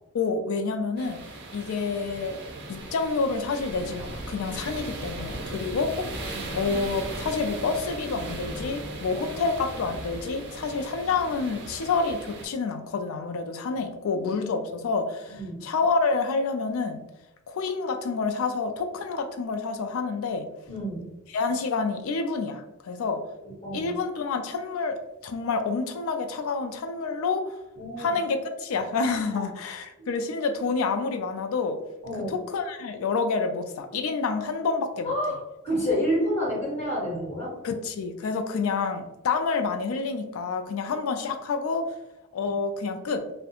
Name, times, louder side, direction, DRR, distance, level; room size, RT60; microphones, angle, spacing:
voice 1, 0.1-1.2 1.5-2.4 2.7-6.1 6.5-17.0 17.5-20.5 21.3-23.2 23.7-27.5 28.0-31.8 32.3-35.1 37.6-41.9 42.3-43.2, left 4 dB, 70° left, 6 dB, 0.3 m, -28 dB
sound 1, 1.0-12.5, right 2 dB, 55° right, 0.5 m, -37 dB
voice 2, 15.3-15.6 20.7-21.1 23.4-23.9 27.8-28.1 29.3-29.4 30.0-30.1 32.0-32.3 35.0-37.5, equal, 30° left, -6 dB, 1.4 m, -29 dB
2.3 x 2.1 x 2.8 m, 0.96 s
head